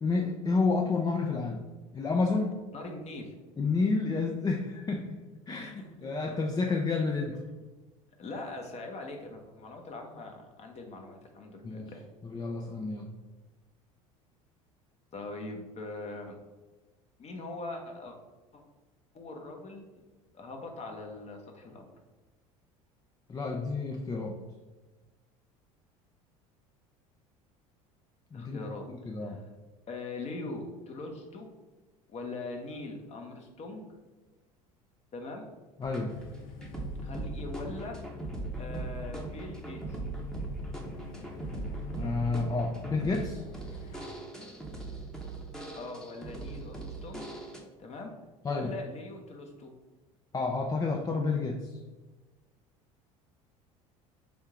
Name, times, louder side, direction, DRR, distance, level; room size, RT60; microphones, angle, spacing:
voice 1, 0.0-1.6 1.9-2.6 3.6-7.4 11.6-11.9 12.2-13.1 23.3-24.3 28.3-28.6 28.9-29.4 35.8-36.2 41.9-43.4 48.4-48.7 50.3-51.8, left 3 dB, 20° left, 1 dB, 0.5 m, -30 dB
voice 2, 2.7-3.3 5.5-6.1 8.2-12.0 15.1-16.4 17.2-18.2 18.5-18.6 19.1-19.8 20.3-21.9 28.3-28.9 29.2-29.4 29.9-31.5 32.1-33.8 35.1-35.5 37.0-38.0 38.6-40.0 45.7-47.3 47.8-48.1 48.5-49.7, left 2 dB, 40° left, 3 dB, 0.9 m, -41 dB
sound 1, 35.8-47.6, right 2 dB, 5° left, 0.9 m, -39 dB
sound 2, 36.1-44.1, left 4 dB, 70° left, 0.6 m, -47 dB
3.5 x 2.7 x 4.7 m, 1.2 s
hypercardioid pair, 70°, 18 cm